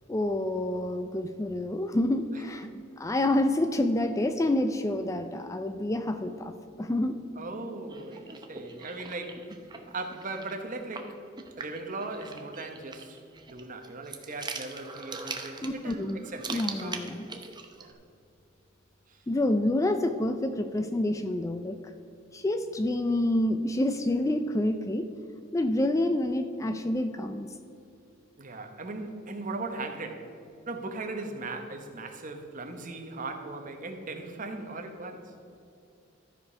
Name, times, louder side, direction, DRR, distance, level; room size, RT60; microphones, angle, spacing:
voice 1, 0.1-2.7 3.0-6.5 6.8-7.2 15.6-16.2 16.5-17.3 19.3-21.8 22.3-25.1 25.5-27.5, left 1 dB, 15° left, 8 dB, 0.3 m, -28 dB
voice 2, 7.4-9.5 9.9-11.2 11.6-13.2 13.5-17.0 17.8-17.9 19.1-19.2 28.4-30.3 30.7-35.3, right 2 dB, 40° right, 5 dB, 1.0 m, -38 dB
sound 1, 7.9-17.9, right 4 dB, 20° right, 0.7 m, -42 dB
13.5 x 5.0 x 5.6 m, 2.7 s
head